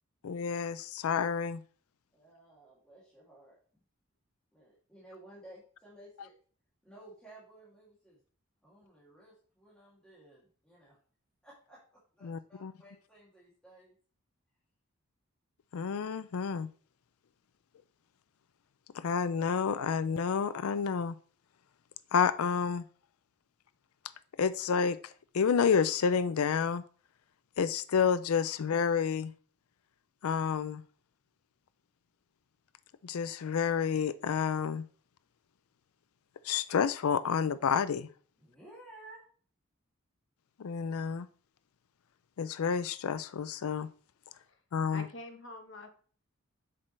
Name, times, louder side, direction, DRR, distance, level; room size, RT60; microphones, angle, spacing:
voice 1, 0.2-1.6 12.2-12.7 15.7-16.7 18.9-21.2 22.1-22.8 24.4-25.0 25.3-26.8 27.6-29.3 30.2-30.8 33.0-34.8 36.4-38.1 40.6-41.3 42.4-43.9 44.7-45.0, left 6 dB, 85° left, 15 dB, 0.4 m, -29 dB
voice 2, 2.1-3.6 4.5-6.3 6.8-8.2 8.6-11.0 11.4-13.9 38.4-39.2, right 1 dB, 5° left, -8 dB, 2.5 m, -55 dB
voice 3, 44.9-45.9, left 2 dB, 60° left, 5 dB, 1.2 m, -46 dB
7.4 x 6.6 x 3.2 m, 0.43 s
head